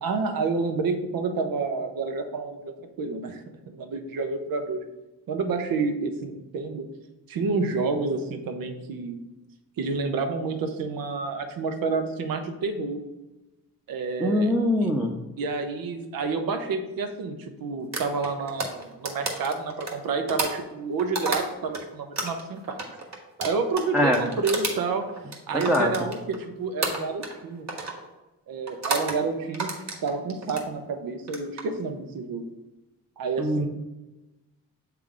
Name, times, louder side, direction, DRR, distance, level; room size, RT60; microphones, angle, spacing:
voice 1, 0.0-4.8 5.3-6.8 7.3-9.2 9.8-13.0 13.9-14.5 14.8-14.9 15.4-22.8 23.4-25.0 25.5-27.7 28.5-29.7 30.0-32.5 33.2-33.7, right 4 dB, 80° right, 6 dB, 0.8 m, -29 dB
voice 2, 14.2-15.1 23.9-24.2 25.5-25.9 33.4-33.7, left 1 dB, 5° right, 0 dB, 0.6 m, -22 dB
sound 1, 17.9-21.8 22.2-26.4 26.8-27.4 27.7-28.0 28.7-29.2 29.5-30.7 31.2-31.6, right 3 dB, 50° right, 1.3 m, -31 dB
7.4 x 3.4 x 3.8 m, 1.0 s
cardioid pair, 80°, 34 cm